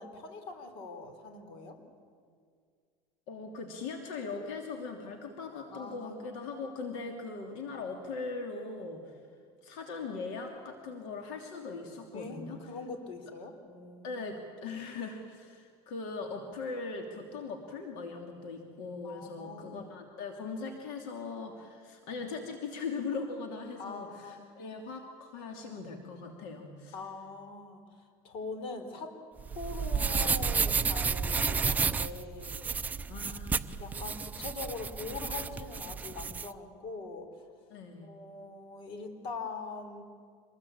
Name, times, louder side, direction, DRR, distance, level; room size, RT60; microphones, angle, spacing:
voice 1, 0.0-1.8 5.7-6.3 12.1-12.4 12.7-14.3 19.0-19.9 23.8-24.4 26.9-29.1 29.5-32.6 33.8-37.5 38.0-40.0, left 4 dB, 50° left, 7 dB, 3.6 m, -42 dB
voice 2, 3.3-9.2 9.6-12.6 14.0-27.0 33.1-33.7 37.7-38.1, left 4 dB, 70° left, 3 dB, 2.9 m, -40 dB
sound 1, 29.4-36.5, right 5 dB, 15° right, 0.5 m, -31 dB
26.0 x 20.5 x 8.7 m, 2.1 s
cardioid pair, 155°, 12 cm